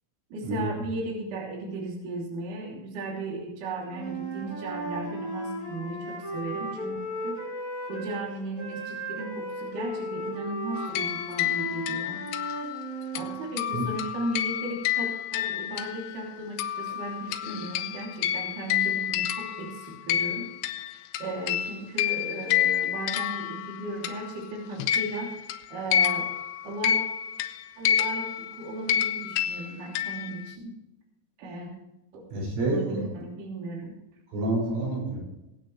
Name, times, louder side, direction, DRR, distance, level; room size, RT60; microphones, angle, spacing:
voice 1, 0.3-7.6 7.9-12.2 13.1-20.5 21.2-25.4 25.7-26.3 26.6-27.0 27.8-30.7 31.4-31.7 32.1-32.3 32.6-34.0, right 2 dB, 45° right, -2 dB, 4.2 m, -36 dB
Wind instrument woodwind instrument, 3.9-8.2 8.6-13.4, right 1 dB, 5° left, 3.9 m, -36 dB
sound 1, 10.8-16.3 16.6-24.4 24.8-30.5, left 10 dB, 80° left, 2.8 m, -29 dB
voice 2, 32.3-33.0 34.3-35.2, right 2 dB, 85° right, -3 dB, 8.5 m, -28 dB
22.5 x 8.8 x 3.2 m, 0.92 s
omnidirectional pair, 5.5 m